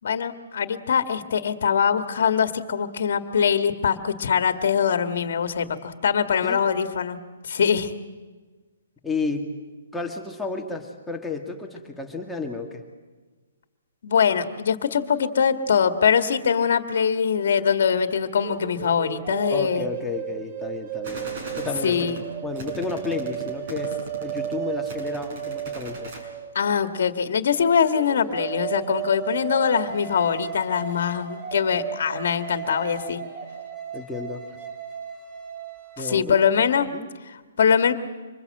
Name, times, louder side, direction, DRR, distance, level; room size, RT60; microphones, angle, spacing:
voice 1, 0.0-7.2 7.5-7.9 14.0-19.9 21.8-22.2 26.6-33.2 36.0-36.9 37.6-37.9, left 7 dB, 60° left, 9 dB, 1.7 m, -22 dB
voice 2, 9.0-9.5 9.9-12.8 19.5-21.3 21.6-22.2 22.4-26.1 33.9-34.4 36.0-36.4 36.9-37.1, left 3 dB, 5° left, 1 dB, 2.0 m, -32 dB
sound 1, 18.4-26.8 27.9-36.2, right 10 dB, 30° right, 2.2 m, -34 dB
sound 2, 21.0-26.2, right 1 dB, 45° right, 6.2 m, -39 dB
25.5 x 21.0 x 7.9 m, 1.3 s
hypercardioid pair, 155°, 0 cm